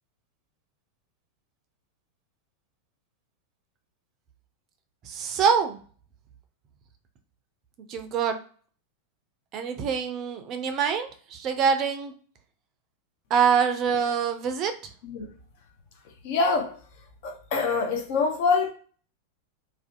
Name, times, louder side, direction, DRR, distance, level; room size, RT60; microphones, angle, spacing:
voice 1, 5.0-5.8 7.9-8.4 9.5-12.1 13.3-14.7, right 7 dB, 35° right, 0.4 m, -25 dB
voice 2, 15.0-15.3 16.2-16.8 17.2-18.7, left 4 dB, 50° left, 0.6 m, -25 dB
2.5 x 2.2 x 2.4 m
figure-of-eight pair, 90°, 0 cm